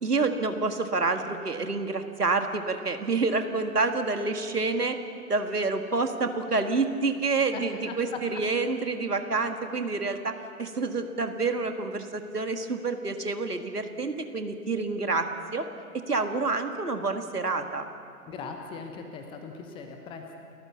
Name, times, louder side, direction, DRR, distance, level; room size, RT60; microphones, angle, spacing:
voice 1, 0.0-5.0 5.3-15.7 15.9-17.9, right 3 dB, 80° right, 6 dB, 1.9 m, -28 dB
voice 2, 7.5-8.2 18.3-20.4, left 5 dB, 10° left, 4 dB, 1.1 m, -39 dB
29.5 x 14.5 x 7.0 m, 2.4 s
figure-of-eight pair, 125°, 46 cm